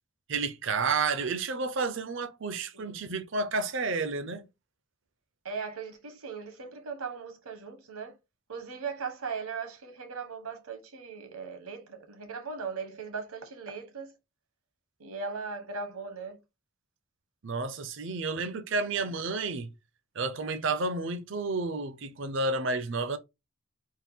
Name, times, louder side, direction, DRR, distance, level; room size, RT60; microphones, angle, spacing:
voice 1, 0.3-4.5 17.4-19.7 20.2-23.2, right 3 dB, 55° right, 0.5 m, -31 dB
voice 2, 5.4-8.2 8.5-14.1 15.0-16.4 18.3-18.4, right 5 dB, 80° right, 1.1 m, -38 dB
3.7 x 2.5 x 3.8 m
head